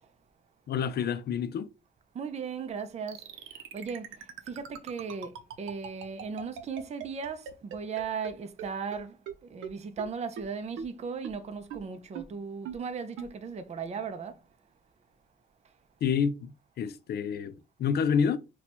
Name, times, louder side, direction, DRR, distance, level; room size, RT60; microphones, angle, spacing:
voice 1, 0.7-1.7 16.0-18.4, left 7 dB, 55° left, 0.5 m, -28 dB
voice 2, 2.1-14.4, right 5 dB, 35° right, 0.5 m, -37 dB
sound 1, 3.1-8.3 8.6-8.7 8.9-9.0 9.3-9.4 9.6-9.7 10.0-10.1 10.4-10.5 10.8-10.9 11.2-11.3 11.7-11.8 12.2-12.3 12.7-12.8 13.2-13.3, right 8 dB, 85° right, 0.6 m, -39 dB
2.8 x 2.2 x 4.2 m
cardioid pair, 90°, 20 cm